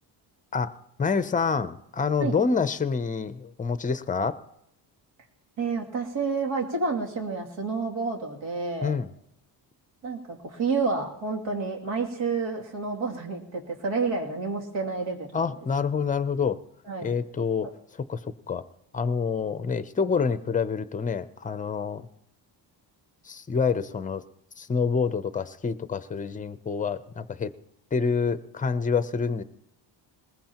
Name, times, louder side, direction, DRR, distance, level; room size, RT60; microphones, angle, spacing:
voice 1, 1.0-4.4 8.8-9.1 15.3-16.6 17.0-17.7 18.1-18.6 18.9-22.1 23.3-24.2 24.6-27.5 27.9-29.4, left 5 dB, 20° left, 13 dB, 0.5 m, -27 dB
voice 2, 5.6-8.9 10.0-15.5 16.8-17.1, right 4 dB, 90° right, 1 dB, 2.7 m, -29 dB
20.5 x 20.5 x 2.9 m, 0.79 s
cardioid pair, 140°, 45 cm